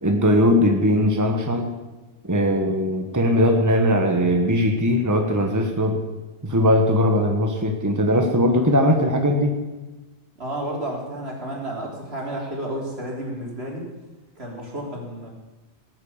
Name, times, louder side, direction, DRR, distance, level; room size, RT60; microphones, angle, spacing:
voice 1, 0.0-1.7 2.2-6.0 6.4-9.5, equal, 15° right, 3 dB, 1.4 m, -19 dB
voice 2, 10.4-13.9 14.4-15.3, right 1 dB, 65° right, -2 dB, 4.0 m, -31 dB
18.5 x 8.8 x 7.3 m, 1.1 s
omnidirectional pair, 1.1 m